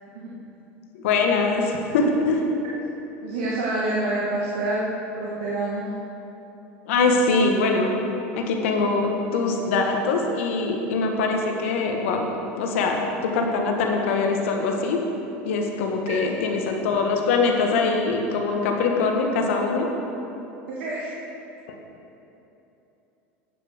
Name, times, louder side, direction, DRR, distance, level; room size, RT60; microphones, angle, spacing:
voice 1, 0.9-2.5 6.9-7.9 8.3-12.3 12.6-15.0 15.4-19.9, left 3 dB, 80° left, 2 dB, 1.4 m, -23 dB
voice 2, 3.2-5.8 16.1-16.2 20.8-21.1, right 2 dB, 80° right, -5 dB, 1.6 m, -27 dB
9.4 x 6.7 x 6.4 m, 3.0 s
hypercardioid pair, 100°, 7 cm